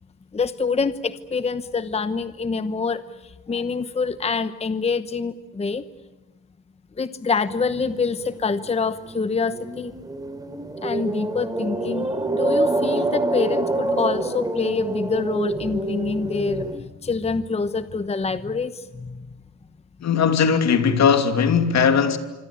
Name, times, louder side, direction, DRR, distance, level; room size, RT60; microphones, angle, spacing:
voice 1, 0.3-5.8 7.0-9.9 10.8-16.7 17.0-19.3, left 4 dB, 20° left, 0.9 m, -26 dB
sound 1, 7.5-16.8, right 2 dB, 10° right, 3.1 m, -27 dB
voice 2, 20.0-22.2, left 6 dB, 60° left, 2.8 m, -18 dB
26.0 x 25.5 x 8.6 m
cardioid pair, 105°, 30 cm